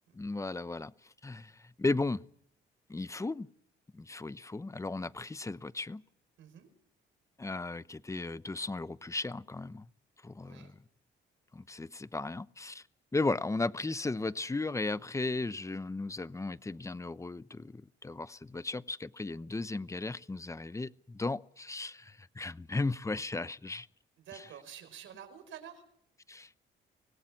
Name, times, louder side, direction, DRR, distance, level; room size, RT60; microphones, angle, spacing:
voice 1, 0.1-0.9 1.2-2.2 2.9-3.5 3.9-6.0 7.4-9.9 10.2-10.7 11.5-12.8 13.1-23.9 26.3-26.5, left 3 dB, 15° left, 0.8 m, -35 dB
voice 2, 6.4-6.7 10.4-10.7 24.2-25.8, right 9 dB, 80° right, 4.9 m, -49 dB
24.0 x 18.0 x 7.3 m
cardioid pair, 90°, 20 cm